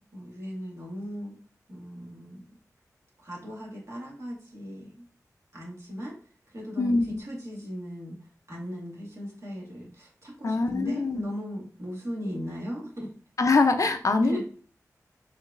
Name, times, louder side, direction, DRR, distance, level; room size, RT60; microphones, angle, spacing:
voice 1, 0.1-1.4 1.7-2.4 3.2-5.0 5.5-6.2 6.5-8.2 8.5-13.1 14.2-14.4, equal, 50° right, -3 dB, 1.7 m, -37 dB
voice 2, 6.8-7.2 10.4-11.2 13.4-14.4, left 3 dB, 60° left, 7 dB, 0.5 m, -23 dB
4.7 x 3.1 x 2.4 m, 0.42 s
wide cardioid pair, 55°, 6 cm